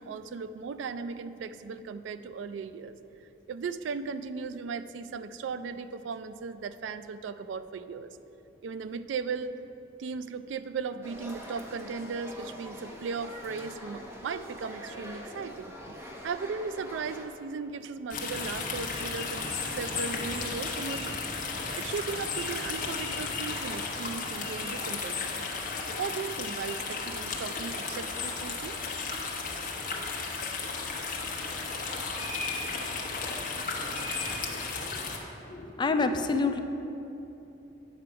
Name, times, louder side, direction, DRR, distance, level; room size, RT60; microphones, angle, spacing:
voice 1, 0.0-3.0 3.5-8.2 8.6-9.5 10.0-21.2 21.8-25.5 26.0-28.8, right 5 dB, 75° right, 12 dB, 0.3 m, -37 dB
sound 1, 11.0-17.3, equal, 15° right, 0.8 m, -44 dB
sound 2, 18.1-35.2, left 4 dB, 50° left, 0.9 m, -34 dB
voice 2, 35.5-36.6, left 3 dB, 25° left, 7 dB, 0.3 m, -28 dB
8.6 x 5.9 x 4.6 m, 3.0 s
head